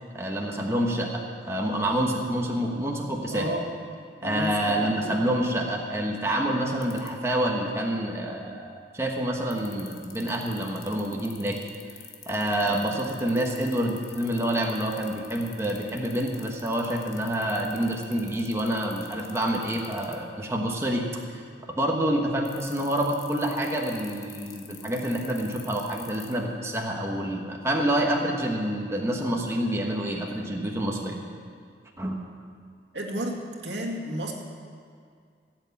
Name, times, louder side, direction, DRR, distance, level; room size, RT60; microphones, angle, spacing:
voice 1, 0.1-3.5 4.2-11.6 12.3-21.4 21.7-31.2 32.0-32.2, right 1 dB, 15° right, 0 dB, 1.3 m, -27 dB
voice 2, 3.3-3.7 4.2-5.1 32.9-34.3, equal, 85° right, 1 dB, 2.0 m, -32 dB
sound 1, 6.8-7.1 9.5-20.1 22.4-26.4, left 11 dB, 60° left, 1.5 m, -45 dB
15.5 x 8.1 x 8.4 m, 2.2 s
head